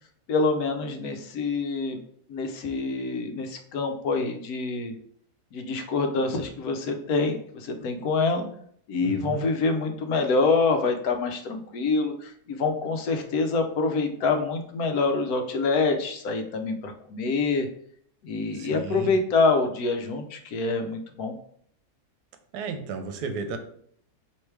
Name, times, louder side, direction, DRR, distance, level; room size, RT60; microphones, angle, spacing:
voice 1, 0.3-2.0 2.3-4.9 5.5-8.5 8.9-17.7 18.2-21.4, left 3 dB, 70° left, 6 dB, 1.1 m, -26 dB
voice 2, 9.0-9.5 18.5-19.1 22.5-23.6, right 4 dB, 80° right, 7 dB, 1.2 m, -33 dB
3.2 x 3.1 x 4.6 m, 0.62 s
omnidirectional pair, 1.7 m